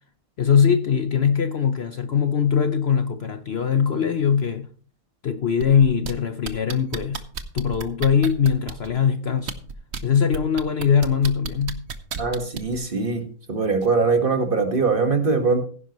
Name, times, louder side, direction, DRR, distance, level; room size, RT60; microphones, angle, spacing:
voice 1, 0.4-4.7 5.2-7.2 7.5-9.5 10.0-11.8, left 7 dB, 55° left, 0.9 m, -21 dB
sound 1, 5.6-6.1 6.4-8.9 9.4-10.0 10.3-12.8 13.8-13.9, right 6 dB, 55° right, 1.1 m, -32 dB
voice 2, 12.2-15.6, right 4 dB, 40° right, 1.7 m, -22 dB
16.0 x 10.0 x 3.0 m
omnidirectional pair, 1.5 m